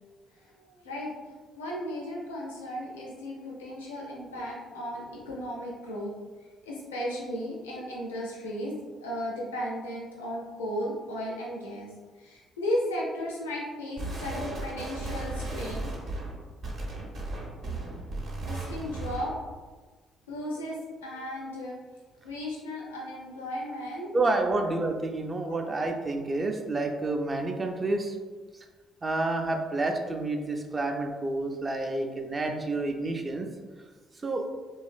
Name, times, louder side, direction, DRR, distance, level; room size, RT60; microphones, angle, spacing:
voice 1, 0.4-1.1 1.5-6.1 6.6-8.7 9.0-16.1 18.4-19.3 20.3-21.8 22.2-24.1 24.5-24.7 25.5-25.6, equal, 80° left, -3 dB, 0.5 m, -35 dB
sound 1, 14.0-19.4, right 2 dB, 55° right, 0.7 m, -35 dB
voice 2, 24.1-28.1 29.0-33.5 34.2-34.4, right 2 dB, 30° right, 3 dB, 0.4 m, -29 dB
3.0 x 2.3 x 2.3 m, 1.4 s
figure-of-eight pair, 45°, 0 cm